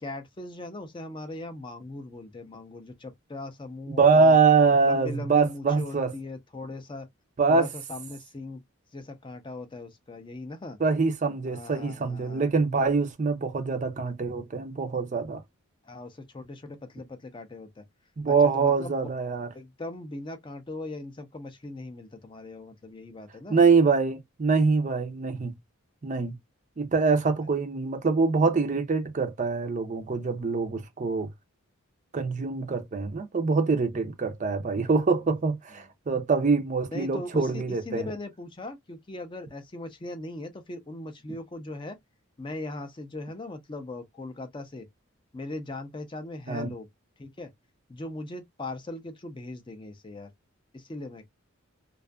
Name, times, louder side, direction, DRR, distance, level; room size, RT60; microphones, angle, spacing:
voice 1, 0.0-4.4 4.9-7.1 7.5-8.6 8.9-10.8 11.5-12.5 15.8-17.8 18.3-19.0 19.5-23.6 35.8-35.9 36.9-42.0 42.4-44.9 45.3-46.9 47.2-47.5 47.9-50.3 50.7-51.2, left 2 dB, 20° left, 0.4 m, -39 dB
voice 2, 3.9-6.1 7.4-7.7 10.8-15.4 18.2-19.5 23.5-25.6 26.0-26.4 26.8-31.3 32.1-38.0 46.5-46.7, right 4 dB, 35° right, 0.4 m, -24 dB
2.5 x 2.3 x 2.2 m
head